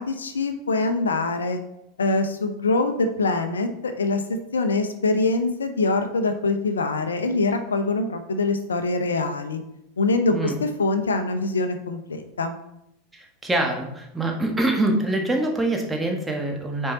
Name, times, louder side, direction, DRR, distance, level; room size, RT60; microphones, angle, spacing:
voice 1, 0.0-1.6 2.0-9.6 10.0-12.6, left 3 dB, 80° left, 8 dB, 0.7 m, -24 dB
voice 2, 13.1-16.9, right 2 dB, 10° right, 1 dB, 1.5 m, -25 dB
6.4 x 4.7 x 4.0 m, 0.85 s
figure-of-eight pair, 85°, 0 cm